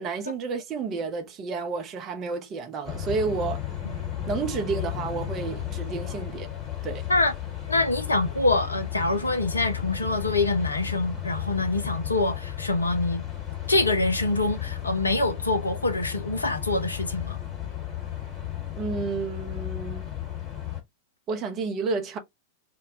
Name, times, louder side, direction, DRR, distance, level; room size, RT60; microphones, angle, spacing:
voice 1, 0.0-3.6 4.3-6.5 6.8-7.0 18.8-20.1 21.3-22.2, right 4 dB, 30° right, 0.6 m, -30 dB
sound 1, 2.8-20.8, left 11 dB, 25° left, 1.1 m, -34 dB
voice 2, 7.7-13.2 13.7-17.4, left 2 dB, 80° left, 0.4 m, -25 dB
2.2 x 2.1 x 2.7 m
figure-of-eight pair, 90°, 0 cm